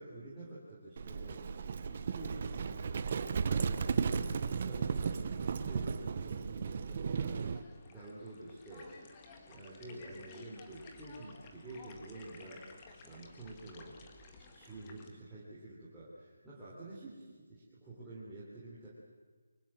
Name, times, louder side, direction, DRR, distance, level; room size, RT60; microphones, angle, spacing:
voice 1, 0.0-1.5 1.9-7.6 7.8-8.9 9.5-12.6 13.0-14.0 14.5-18.9, right 2 dB, 5° right, -11 dB, 3.5 m, -49 dB
Livestock farm animals working animals, 1.0-7.6, right 6 dB, 30° right, 1.0 m, -35 dB
sound 1, 7.2-15.1, left 4 dB, 15° left, 1.9 m, -55 dB
24.0 x 24.0 x 7.7 m, 1.4 s
hypercardioid pair, 175°, 0 cm